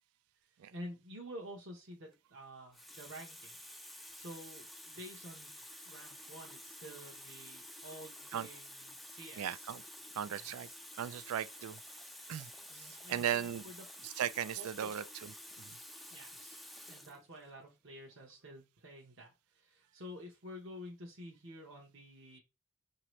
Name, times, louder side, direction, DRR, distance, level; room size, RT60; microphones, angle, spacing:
voice 1, 0.7-3.6 3.8-5.6 5.8-9.7 10.3-10.5 12.7-13.8 14.6-14.9 16.1-16.6 16.9-22.4, equal, 60° right, 1.0 m, -50 dB
Water tap faucet, 1.9-2.2 2.7-17.2 18.1-18.3, equal, ahead, 0.3 m, -51 dB
voice 2, 9.4-9.8 10.2-10.7 11.0-11.8 12.3-13.6 14.0-15.3 15.6-15.8, right 9 dB, 80° right, 0.3 m, -37 dB
5.8 x 2.8 x 3.1 m
head